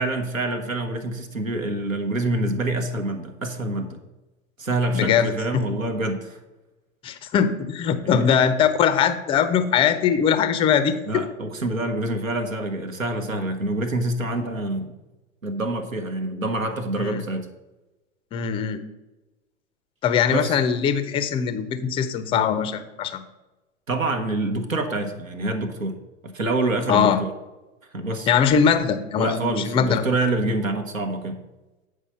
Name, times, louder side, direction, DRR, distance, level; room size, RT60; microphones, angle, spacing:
voice 1, 0.0-4.0 4.6-6.4 8.0-8.3 11.0-14.9 15.4-17.5 20.3-20.6 23.9-26.0 26.2-27.3 27.9-28.3 29.2-31.4, right 2 dB, 90° right, 7 dB, 1.1 m, -26 dB
voice 2, 4.9-5.3 7.0-11.3 17.0-17.2 18.3-18.8 20.0-23.2 26.9-27.2 28.3-30.0, left 7 dB, 15° left, 11 dB, 0.4 m, -21 dB
8.1 x 4.9 x 5.5 m, 1.1 s
figure-of-eight pair, 100°, 39 cm